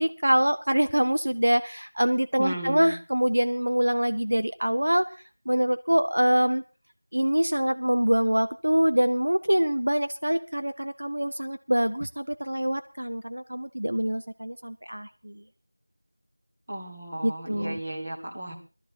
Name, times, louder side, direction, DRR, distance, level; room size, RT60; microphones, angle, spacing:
voice 1, 0.0-5.1 5.5-6.6 7.1-15.4 17.2-17.8, equal, 50° right, 9 dB, 1.0 m, -25 dB
voice 2, 2.4-3.0 16.7-18.6, right 1 dB, 15° right, -1 dB, 1.4 m, -34 dB
18.5 x 13.0 x 4.4 m, 0.35 s
figure-of-eight pair, 180°, 0 cm